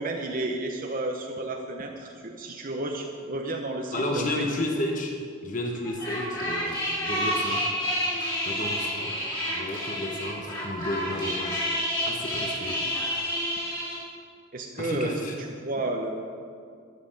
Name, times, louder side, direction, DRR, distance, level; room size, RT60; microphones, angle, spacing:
voice 1, 0.0-4.5 14.5-15.2 15.6-16.1, right 2 dB, 40° right, 2 dB, 0.9 m, -32 dB
voice 2, 3.9-5.1 5.4-7.7 8.4-9.2 9.5-11.7 12.1-12.9 14.8-15.3, left 1 dB, 40° left, 1 dB, 1.2 m, -32 dB
sound 1, 5.8-14.0, equal, 20° left, 2.9 m, -29 dB
13.0 x 7.9 x 7.6 m, 2.3 s
head